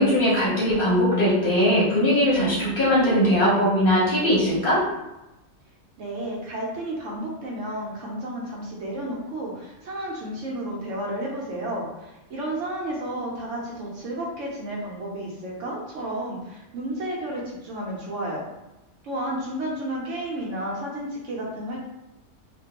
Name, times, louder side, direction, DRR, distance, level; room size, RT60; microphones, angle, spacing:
voice 1, 0.0-4.8, equal, 50° left, -7 dB, 0.8 m, -20 dB
voice 2, 6.0-18.4 19.0-21.9, right 1 dB, 65° right, -3 dB, 0.9 m, -32 dB
2.4 x 2.2 x 2.8 m, 0.96 s
omnidirectional pair, 1.5 m